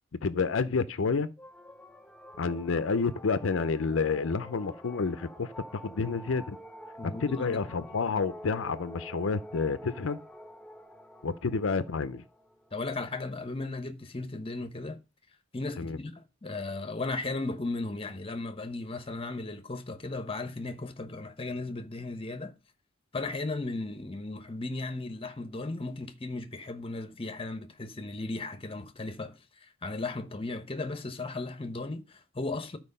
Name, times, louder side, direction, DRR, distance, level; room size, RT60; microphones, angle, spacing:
voice 1, 0.2-1.3 2.4-6.6 7.0-10.2 11.2-12.2 15.8-16.0, left 4 dB, 75° left, 0.6 m, -29 dB
sound 1, 1.4-13.2, equal, 5° left, 0.6 m, -48 dB
voice 2, 7.0-7.6 12.7-15.0 15.5-22.5 23.1-29.4 29.8-32.8, left 2 dB, 30° left, 0.9 m, -36 dB
12.0 x 4.6 x 5.4 m
head